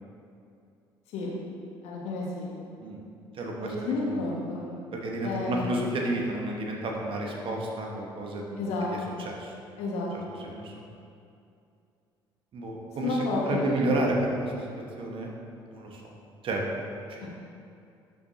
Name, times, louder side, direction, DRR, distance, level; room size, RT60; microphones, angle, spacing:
voice 1, 1.8-2.5 3.6-4.7 5.2-5.8 8.6-9.2 9.8-10.3 13.0-13.7 17.2-17.3, left 2 dB, 60° left, -3 dB, 1.6 m, -31 dB
voice 2, 3.3-4.2 4.9-8.7 8.9-9.5 10.4-10.7 12.5-14.7 15.0-15.3 15.7-16.1 16.4-16.7 17.1-17.3, right 1 dB, 45° right, 0 dB, 1.2 m, -31 dB
12.0 x 5.8 x 2.7 m, 2.5 s
figure-of-eight pair, 50°, 13 cm